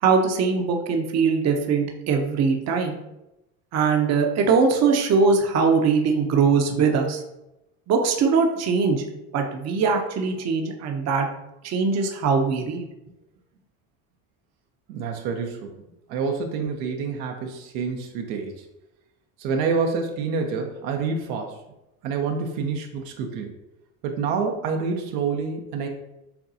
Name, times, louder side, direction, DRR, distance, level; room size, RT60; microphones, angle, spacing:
voice 1, 0.0-2.9 3.7-7.2 7.9-9.0 9.3-11.3 11.6-12.9, right 5 dB, 45° right, 3 dB, 0.7 m, -21 dB
voice 2, 14.9-15.7 16.1-18.6 19.4-21.6 22.0-23.5 24.0-25.9, right 5 dB, 80° right, 3 dB, 0.7 m, -27 dB
6.8 x 2.3 x 2.7 m, 0.91 s
supercardioid pair, 100°, 35 cm